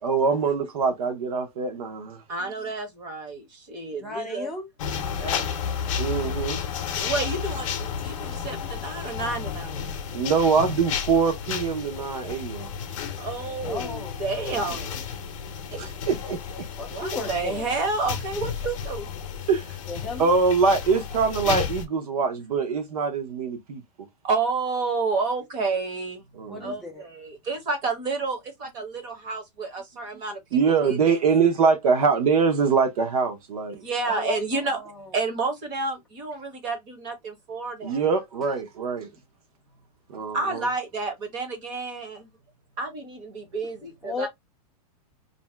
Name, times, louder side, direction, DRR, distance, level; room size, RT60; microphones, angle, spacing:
voice 1, 0.0-2.2 6.0-6.6 10.1-12.7 15.7-16.7 19.5-19.7 20.2-23.8 26.3-26.6 30.5-33.8 37.8-39.1 40.1-40.6, right 5 dB, 60° right, 0.9 m, -23 dB
voice 2, 2.3-4.5 5.2-5.4 7.0-9.9 13.2-14.9 16.9-19.2 24.2-26.3 26.6-30.4 30.8-31.2 33.7-34.8 35.1-38.1 40.3-42.3 42.8-44.3, right 3 dB, 20° right, 0.7 m, -30 dB
voice 3, 3.9-4.7 13.7-14.2 14.5-15.0 16.8-17.7 19.9-20.3 26.5-27.0 34.0-35.1 44.0-44.3, left 2 dB, ahead, 0.4 m, -35 dB
sound 1, 4.8-21.8, left 7 dB, 55° left, 0.6 m, -32 dB
2.6 x 2.1 x 3.3 m
supercardioid pair, 180°, 20 cm